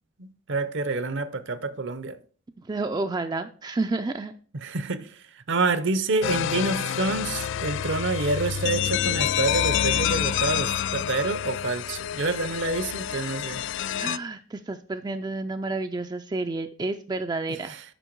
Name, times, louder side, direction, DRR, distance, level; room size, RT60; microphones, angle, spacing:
voice 1, 0.2-2.2 4.5-13.6 17.5-17.8, right 3 dB, 60° right, 0.7 m, -28 dB
voice 2, 2.6-4.3 14.0-17.7, right 3 dB, 20° right, 0.4 m, -30 dB
sound 1, 6.2-14.2, left 10 dB, 60° left, 0.3 m, -28 dB
9.1 x 5.6 x 4.5 m
head